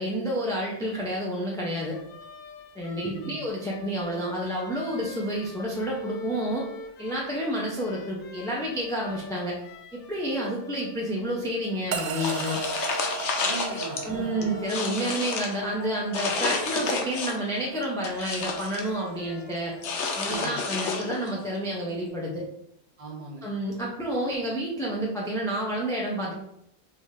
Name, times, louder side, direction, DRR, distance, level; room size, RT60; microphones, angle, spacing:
voice 1, 0.0-2.0 2.7-6.7 7.0-9.6 9.9-12.6 14.0-19.7 20.1-22.4 23.4-26.3, equal, 5° left, -4 dB, 0.6 m, -29 dB
sound 1, 1.9-20.5, left 3 dB, 55° left, 0.6 m, -45 dB
voice 2, 3.1-3.4 13.4-14.5 20.2-20.6 23.0-23.4, right 2 dB, 35° right, -4 dB, 0.9 m, -38 dB
sound 2, 11.9-22.3, right 6 dB, 60° right, 0.5 m, -39 dB
sound 3, 12.2-14.0 14.4-15.6 16.1-17.5 17.8-18.9 19.8-21.3, left 4 dB, 80° left, 1.0 m, -30 dB
5.3 x 2.7 x 3.3 m, 0.77 s
omnidirectional pair, 1.2 m